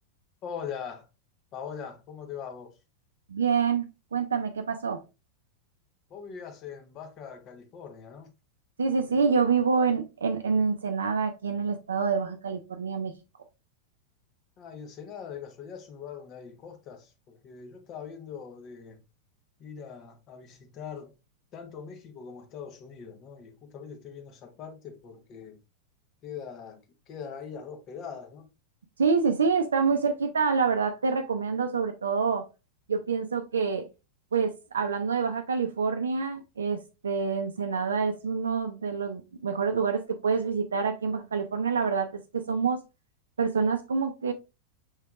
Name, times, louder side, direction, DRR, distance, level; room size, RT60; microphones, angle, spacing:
voice 1, 0.4-1.1 1.5-2.8 6.1-8.3 9.1-9.3 14.6-19.0 19.6-21.1 21.5-25.6 26.2-28.5, left 7 dB, 35° left, 1.1 m, -42 dB
voice 2, 3.3-5.0 8.8-13.1 29.0-32.5 32.9-33.9 34.3-42.8 43.4-44.3, right 5 dB, 70° right, 0.5 m, -27 dB
6.3 x 3.3 x 2.4 m
figure-of-eight pair, 90°, 0 cm